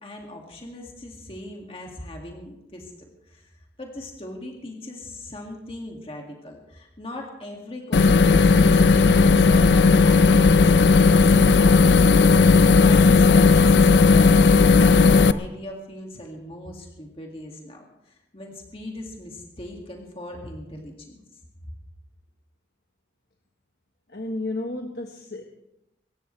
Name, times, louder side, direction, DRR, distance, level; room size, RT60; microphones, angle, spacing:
voice 1, 0.0-12.3 12.6-21.2, left 1 dB, 30° left, 1 dB, 2.2 m, -39 dB
sound 1, 7.9-15.3, left 4 dB, 75° left, 0.5 m, -15 dB
voice 2, 24.1-25.4, left 2 dB, 60° left, 2 dB, 1.4 m, -32 dB
25.0 x 14.0 x 3.3 m, 0.89 s
head